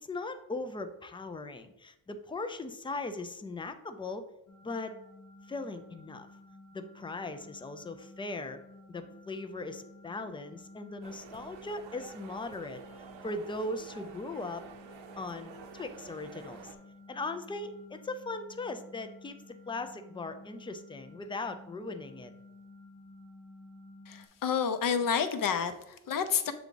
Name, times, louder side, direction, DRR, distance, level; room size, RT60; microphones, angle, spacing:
voice 1, 0.0-4.3 4.6-4.9 5.5-6.3 6.7-8.6 8.9-12.8 13.2-14.7 15.2-16.8 17.1-19.4 19.7-22.3, left 2 dB, 10° left, 9 dB, 0.4 m, -39 dB
sound 1, 4.5-24.3, left 2 dB, 70° left, 1.3 m, -53 dB
sound 2, 11.0-16.8, right 5 dB, 85° right, 0.8 m, -50 dB
voice 2, 24.1-26.5, left 7 dB, 45° left, 9 dB, 0.7 m, -29 dB
6.9 x 3.5 x 3.8 m, 0.86 s
cardioid pair, 100°, 46 cm